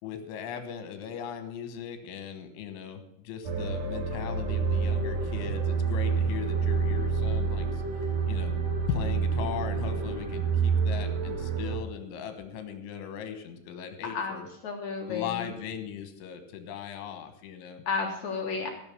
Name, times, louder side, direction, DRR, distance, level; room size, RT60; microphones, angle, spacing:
voice 1, 0.0-7.8 8.3-8.5 8.9-14.5 15.1-17.8, left 8 dB, 85° left, 8 dB, 3.7 m, -38 dB
sound 1, 3.4-11.8, right 5 dB, 75° right, 1.5 m, -28 dB
voice 2, 14.0-14.4 14.6-15.5 17.9-18.7, left 5 dB, 65° left, 1 dB, 1.9 m, -32 dB
16.5 x 6.4 x 7.1 m, 0.78 s
omnidirectional pair, 5.4 m